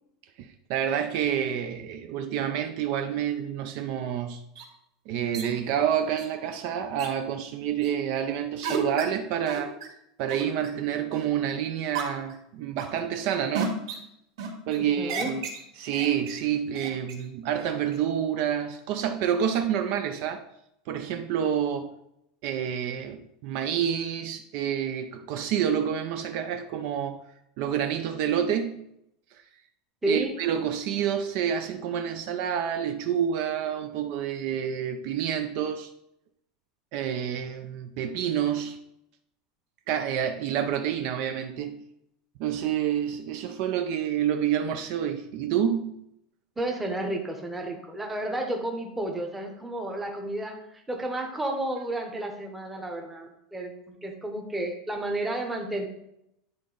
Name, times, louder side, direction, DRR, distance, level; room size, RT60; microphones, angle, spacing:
voice 1, 0.4-4.4 5.1-9.7 10.2-13.8 14.7-15.4 15.8-20.4 20.9-21.9 22.4-27.2 27.6-28.8 30.1-35.9 36.9-38.8 39.9-41.8 42.4-46.0, right 9 dB, 45° right, 0.4 m, -28 dB
sound 1, 4.6-4.7 5.3-5.5 6.2-6.3 7.0-7.1 7.8-7.9 8.6-9.0 9.5-9.9 10.3-10.7 11.1-11.5 11.9-12.3 12.8-13.1 13.5-14.0 14.4-14.8 15.1-15.6 15.9-16.4 16.7-17.2 17.6-18.0, right 5 dB, 75° right, 1.9 m, -33 dB
voice 2, 14.7-15.4 30.0-30.3 46.6-55.9, right 1 dB, 5° right, 0.9 m, -32 dB
10.5 x 3.7 x 3.9 m
supercardioid pair, 170°, 3 cm